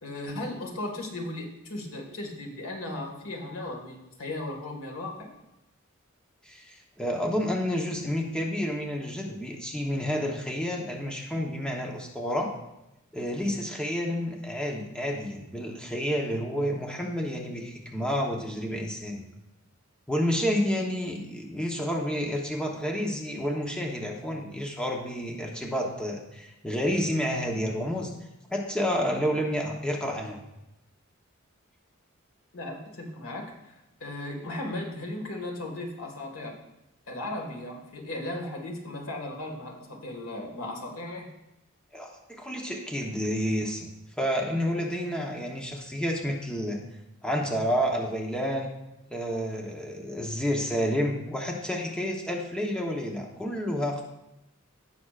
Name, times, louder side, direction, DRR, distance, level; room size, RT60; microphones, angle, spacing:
voice 1, 0.0-5.3 29.2-29.4 32.5-33.7 34.0-36.6 37.1-41.3, left 1 dB, 85° left, 1 dB, 1.8 m, -36 dB
voice 2, 6.4-12.5 13.1-19.2 20.1-28.1 28.5-30.4 41.9-43.9 44.2-46.8 47.2-48.7 49.1-54.0, equal, 5° left, 0 dB, 1.0 m, -30 dB
16.5 x 6.1 x 2.5 m, 0.93 s
head